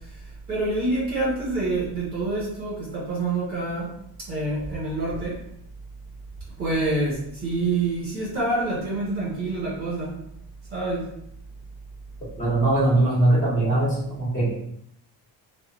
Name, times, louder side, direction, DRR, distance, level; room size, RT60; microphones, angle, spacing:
voice 1, 0.5-3.9 4.3-5.4 6.6-10.1 10.7-11.1, right 2 dB, 35° right, -8 dB, 1.3 m, -26 dB
voice 2, 12.4-14.5, right 2 dB, 20° left, -6 dB, 1.2 m, -21 dB
2.8 x 2.0 x 2.4 m, 0.71 s
cardioid pair, 135°, 41 cm